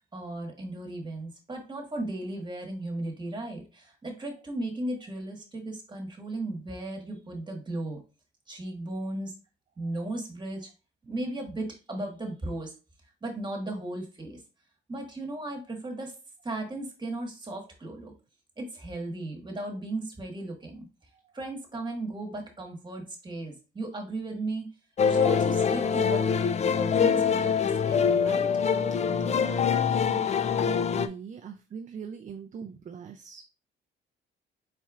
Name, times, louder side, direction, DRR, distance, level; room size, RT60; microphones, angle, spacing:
voice 1, 0.1-8.0 8.5-9.3 9.8-10.7 11.1-12.7 13.2-14.4 14.9-16.1 16.4-18.1 18.6-20.9 21.3-24.7 25.0-26.3 26.6-28.5, right 2 dB, 25° right, 2 dB, 1.6 m, -36 dB
sound 1, 25.0-31.1, left 6 dB, 35° left, 0.4 m, -24 dB
voice 2, 29.1-30.3 30.6-33.4, right 6 dB, 40° right, 6 dB, 0.5 m, -42 dB
4.4 x 4.2 x 2.5 m, 0.31 s
cardioid pair, 90°, 20 cm